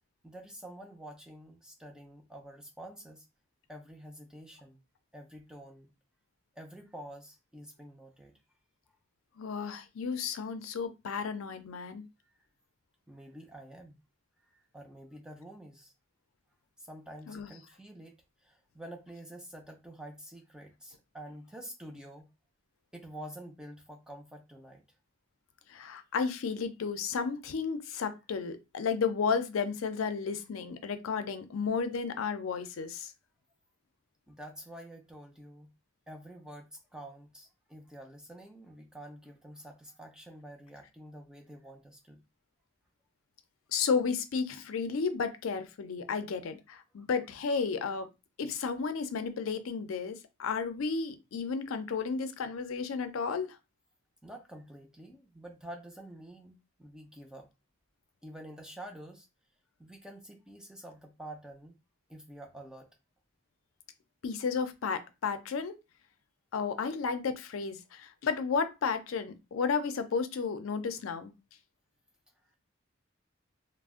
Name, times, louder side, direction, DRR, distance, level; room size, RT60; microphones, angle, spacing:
voice 1, 0.2-3.3 3.7-4.8 5.1-5.9 6.6-8.3 12.2-12.4 13.1-14.0 14.4-15.9 16.8-22.3 22.9-24.8 34.3-35.7 36.1-42.2 47.0-47.1 54.2-57.5 58.2-59.3 59.8-61.8 62.1-62.9, right 1 dB, 5° right, 0.3 m, -48 dB
voice 2, 9.4-12.0 17.3-17.5 25.7-33.1 43.7-48.1 48.4-53.6 64.2-65.8 66.5-71.3, left 5 dB, 80° left, 0.4 m, -33 dB
2.4 x 2.0 x 3.5 m
head